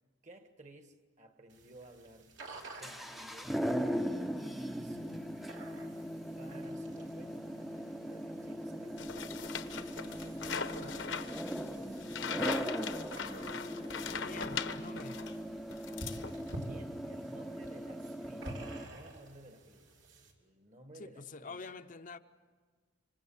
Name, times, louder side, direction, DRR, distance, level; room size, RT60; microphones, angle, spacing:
voice 1, 0.2-2.3 2.8-5.2 6.3-9.2 9.9-11.1 16.6-19.9 20.4-21.7, right 1 dB, 40° right, 1.6 m, -56 dB
sound 1, 1.5-20.3, right 1 dB, 70° right, 3.3 m, -52 dB
sound 2, 2.6-18.9, equal, ahead, 0.7 m, -39 dB
sound 3, 9.0-15.4 15.7-16.6, left 6 dB, 70° left, 1.1 m, -40 dB
voice 2, 14.2-15.3 21.0-22.2, left 3 dB, 45° left, 0.7 m, -47 dB
26.0 x 26.0 x 7.1 m
head